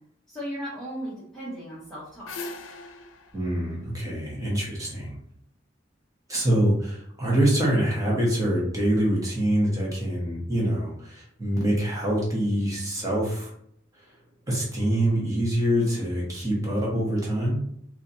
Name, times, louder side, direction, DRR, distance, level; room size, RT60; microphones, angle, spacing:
voice 1, 0.3-2.3, equal, 5° left, -11 dB, 1.0 m, -36 dB
sound 1, 1.8-4.9, left 3 dB, 85° left, 0.5 m, -41 dB
voice 2, 3.3-5.2 6.3-13.5 14.5-17.6, right 1 dB, 20° right, -5 dB, 1.3 m, -25 dB
4.0 x 2.8 x 2.7 m, 0.69 s
head